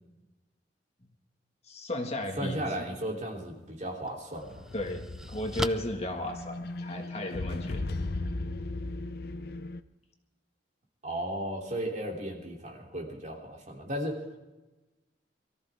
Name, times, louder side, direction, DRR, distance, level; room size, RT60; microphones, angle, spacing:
voice 1, 1.6-2.6 4.7-8.0, left 1 dB, 40° left, 3 dB, 1.9 m, -35 dB
voice 2, 2.4-4.6 11.0-14.4, right 1 dB, 45° right, 0 dB, 3.3 m, -35 dB
sound 1, 3.3-3.5 4.1-7.1, equal, 5° right, 0.5 m, -39 dB
sound 2, 4.4-9.8, left 2 dB, 60° left, 0.7 m, -37 dB
23.0 x 14.5 x 3.6 m, 1.1 s
head